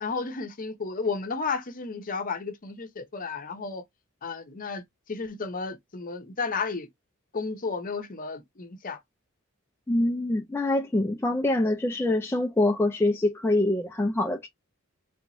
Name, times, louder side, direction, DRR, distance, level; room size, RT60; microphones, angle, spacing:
voice 1, 0.0-3.8 4.2-6.9 7.3-9.0, left 4 dB, 40° left, 0.7 m, -33 dB
voice 2, 9.9-14.5, left 1 dB, 10° left, 0.4 m, -25 dB
3.5 x 2.9 x 2.5 m
head